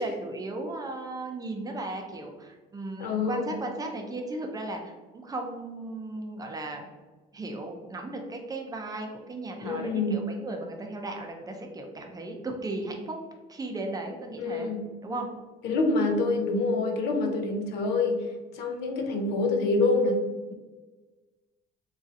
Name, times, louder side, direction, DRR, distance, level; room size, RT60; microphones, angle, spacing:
voice 1, 0.0-6.9 7.3-13.2 13.5-14.7 15.0-15.3, right 2 dB, 20° right, 2 dB, 0.5 m, -36 dB
voice 2, 3.0-3.5 9.6-10.2 14.4-14.9 15.6-20.2, left 3 dB, 85° left, 5 dB, 0.5 m, -26 dB
3.0 x 2.6 x 2.5 m, 1.2 s
cardioid pair, 110°, 17 cm